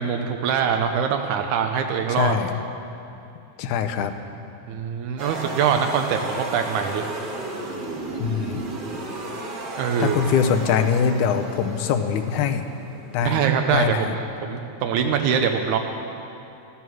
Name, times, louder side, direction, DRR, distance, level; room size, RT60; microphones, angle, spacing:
voice 1, 0.0-2.4 4.7-7.1 9.8-10.2 13.2-15.8, right 7 dB, 85° right, 4 dB, 2.2 m, -23 dB
voice 2, 2.1-2.5 3.6-4.1 8.2-8.6 10.0-12.6 13.1-13.4 13.7-14.2, left 7 dB, 90° left, 8 dB, 2.2 m, -23 dB
sound 1, 5.2-13.3, right 2 dB, 50° right, 1.3 m, -34 dB
14.0 x 14.0 x 6.2 m, 2.8 s
omnidirectional pair, 3.4 m